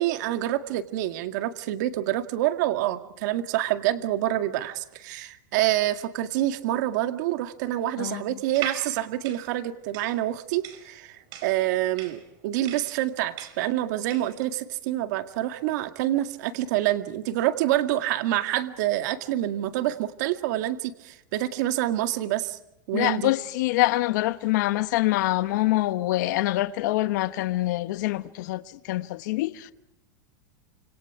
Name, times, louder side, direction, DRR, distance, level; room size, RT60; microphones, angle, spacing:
voice 1, 0.0-22.6 22.9-23.3, right 14 dB, 65° right, 2.0 m, -27 dB
sound 1, 8.4-14.4, right 9 dB, 50° right, 4.8 m, -40 dB
voice 2, 22.9-29.7, left 17 dB, 70° left, 1.1 m, -25 dB
29.0 x 27.0 x 4.8 m
supercardioid pair, 130°, 10 cm